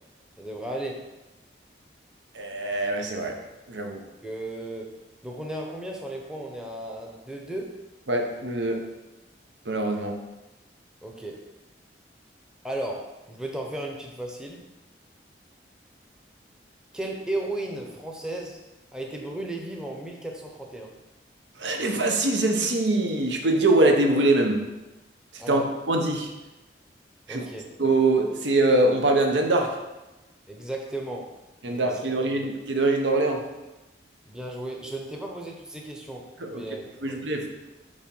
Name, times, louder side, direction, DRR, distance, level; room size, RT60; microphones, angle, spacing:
voice 1, 0.4-1.0 4.2-4.9 5.2-7.8 11.0-11.4 12.6-14.6 16.9-18.6 18.9-20.9 25.4-25.7 27.3-27.7 30.5-31.3 31.7-32.4 34.3-37.2, right 1 dB, 5° right, 0 dB, 0.7 m, -35 dB
voice 2, 2.3-3.4 3.7-4.0 8.1-8.8 9.7-10.1 21.6-24.6 25.5-26.3 27.3-27.4 27.8-29.7 31.6-33.4 36.4-36.6 37.0-37.5, right 2 dB, 85° right, 3 dB, 0.9 m, -23 dB
5.2 x 4.2 x 5.3 m, 1.0 s
head